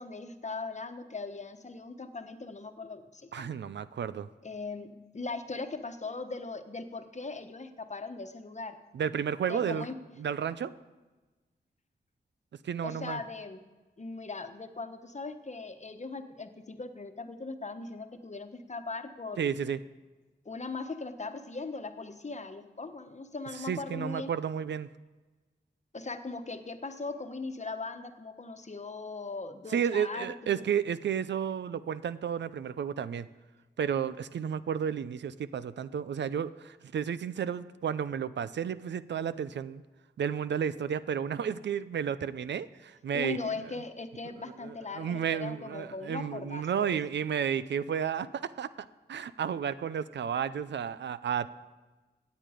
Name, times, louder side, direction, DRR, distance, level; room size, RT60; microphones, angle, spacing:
voice 1, 0.0-3.6 4.4-8.8 9.5-10.0 12.8-13.6 14.0-19.5 20.4-24.3 25.9-30.6 43.1-47.0, left 3 dB, 40° left, 8 dB, 1.2 m, -39 dB
voice 2, 3.3-4.3 8.9-9.9 10.2-10.7 12.6-13.2 19.4-19.8 23.6-24.9 29.7-33.3 33.8-39.8 40.2-43.5 44.6-48.7 49.1-51.5, right 8 dB, 85° right, 15 dB, 0.5 m, -32 dB
16.0 x 9.4 x 5.1 m, 1.2 s
cardioid pair, 50°, 18 cm